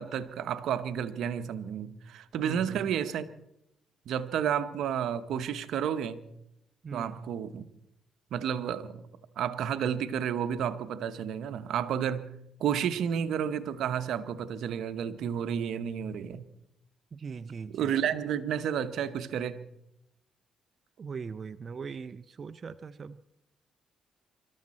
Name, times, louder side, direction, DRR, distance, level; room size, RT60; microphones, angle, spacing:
voice 1, 0.0-3.3 4.1-6.3 6.9-7.6 8.3-9.1 9.4-12.3 12.6-16.4 17.7-19.7, right 8 dB, 75° right, 0.9 m, -31 dB
voice 2, 2.4-3.0 6.8-7.2 17.1-17.9 21.0-23.2, right 5 dB, 40° right, 0.5 m, -40 dB
24.5 x 13.0 x 4.2 m
cardioid pair, 90°, 0 cm